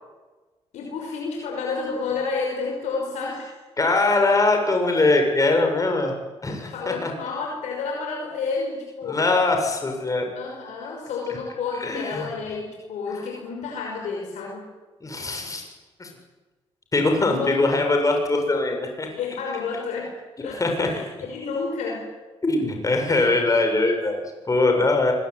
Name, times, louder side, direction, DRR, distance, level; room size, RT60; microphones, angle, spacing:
voice 1, 0.7-3.5 6.7-9.3 10.4-14.7 17.3-17.7 19.0-20.1 20.4-22.0, left 4 dB, 80° left, 0 dB, 5.9 m, -30 dB
voice 2, 3.8-6.1 6.4-7.1 9.1-10.2 11.8-12.3 15.0-15.7 16.0-16.1 16.9-19.1 20.6-20.9 22.4-25.1, left 2 dB, 30° left, 3 dB, 7.4 m, -22 dB
24.0 x 21.0 x 9.8 m, 1.3 s
supercardioid pair, 65°, 12 cm